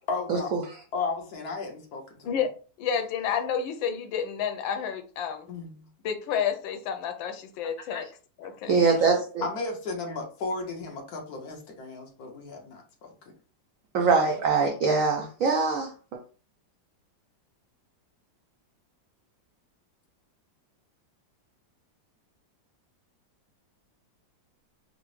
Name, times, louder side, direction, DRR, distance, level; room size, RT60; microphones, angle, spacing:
voice 1, 0.1-0.5 0.9-2.4 5.5-5.9 7.9-8.1 9.4-13.1, left 3 dB, 60° left, 1 dB, 1.2 m, -34 dB
voice 2, 2.8-5.5 6.0-8.1 8.4-8.8, left 7 dB, 90° left, 7 dB, 1.4 m, -30 dB
voice 3, 8.7-9.4 13.9-15.9, right 4 dB, 85° right, 2 dB, 0.7 m, -23 dB
3.9 x 2.0 x 3.1 m, 0.38 s
omnidirectional pair, 2.0 m